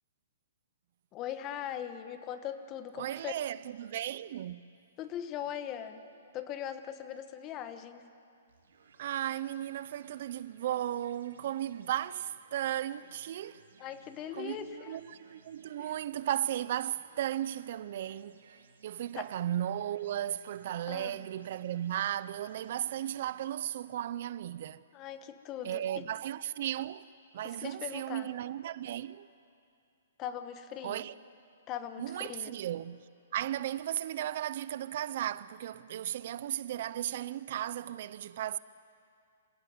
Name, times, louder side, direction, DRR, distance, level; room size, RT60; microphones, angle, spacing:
voice 1, 1.1-3.3 5.0-6.0 6.3-8.0 13.8-15.0 15.8-15.9 19.1-19.3 20.9-21.3 24.9-26.0 27.4-28.3 30.2-31.1 31.7-32.6, left 10 dB, 25° left, 1.2 m, -40 dB
voice 2, 3.0-4.6 9.0-13.6 14.4-18.4 18.8-24.8 25.6-27.1 27.3-29.3 30.8-31.1 32.0-33.0 33.3-38.6, right 12 dB, 50° right, 0.5 m, -35 dB
sound 1, 8.5-23.5, right 5 dB, 80° right, 2.7 m, -61 dB
26.5 x 16.5 x 9.5 m
hypercardioid pair, 155°, 0 cm